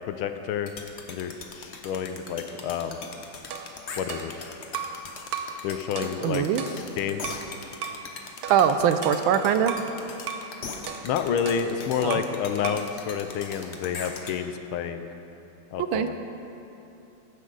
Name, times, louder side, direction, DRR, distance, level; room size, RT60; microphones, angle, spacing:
voice 1, 0.1-0.7 1.1-3.0 4.0-4.3 5.6-6.5 7.0-7.4 11.0-15.1 15.7-16.1, left 8 dB, 85° left, 9 dB, 1.5 m, -29 dB
sound 1, 0.7-14.3, left 4 dB, 45° left, 1.0 m, -39 dB
sound 2, 3.5-5.0 5.3-5.6 6.0-7.5 7.8-8.1 8.4-9.9 10.3-10.5 10.9-12.4 12.6-12.9, right 6 dB, 60° right, 1.0 m, -36 dB
voice 2, 6.0-6.6 8.5-9.8 12.0-12.2 15.9-16.1, right 8 dB, 80° right, 9 dB, 1.4 m, -22 dB
15.0 x 11.5 x 4.0 m, 3.0 s
omnidirectional pair, 2.3 m